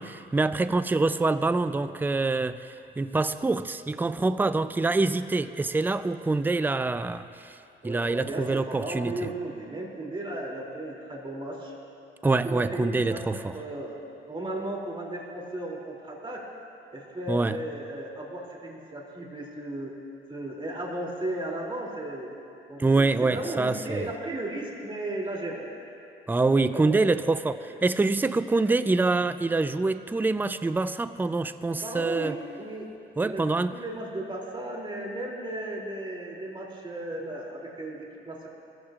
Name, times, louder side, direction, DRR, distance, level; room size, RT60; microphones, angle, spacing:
voice 1, 0.0-7.6 7.8-9.1 12.2-13.5 17.3-17.5 22.8-24.1 26.3-32.4 33.2-33.7, right 3 dB, 10° right, 12 dB, 0.4 m, -25 dB
voice 2, 7.8-11.7 12.4-14.0 14.3-16.4 16.9-19.9 20.3-22.3 22.7-25.6 26.6-27.2 27.7-27.8 31.8-32.9 33.2-38.5, right 1 dB, 25° right, -2 dB, 2.8 m, -35 dB
23.0 x 15.0 x 2.4 m, 2.7 s
cardioid pair, 90°, 20 cm